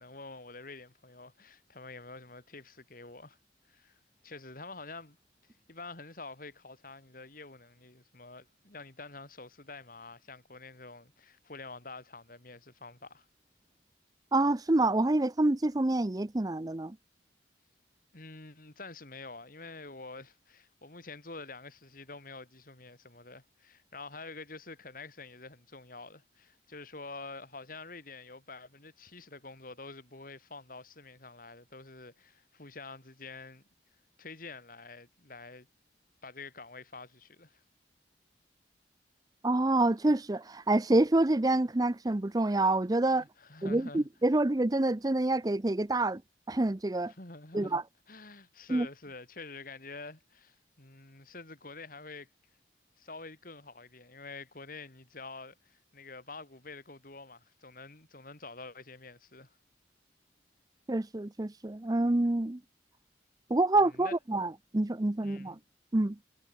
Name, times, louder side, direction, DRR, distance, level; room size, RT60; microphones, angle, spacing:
voice 1, 0.0-3.4 3.7-5.2 5.7-13.3 18.1-33.6 34.2-35.7 36.2-37.6 43.2-44.1 47.1-47.8 48.1-52.3 53.0-59.6 63.7-64.2 65.2-65.6, left 3 dB, 50° left, 3.4 m, -47 dB
voice 2, 14.3-17.0 39.4-43.2 43.6-46.2 46.5-47.1 47.5-47.8 48.7-48.9 60.9-62.6 63.5-65.6 65.9-66.2, right 2 dB, 20° right, 0.6 m, -27 dB
head